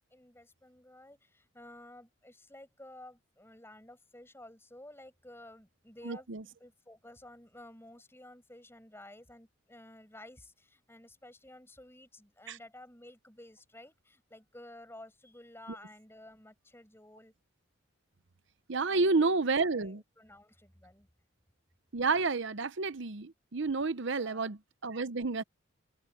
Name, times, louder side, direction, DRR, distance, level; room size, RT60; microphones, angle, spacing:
voice 1, 0.1-6.3 6.6-17.3 18.9-21.1 24.2-24.6, left 1 dB, 10° left, 6.5 m, -53 dB
voice 2, 6.0-6.4 12.5-12.6 18.7-20.0 21.9-25.4, right 3 dB, 60° right, 0.8 m, -30 dB
open air
head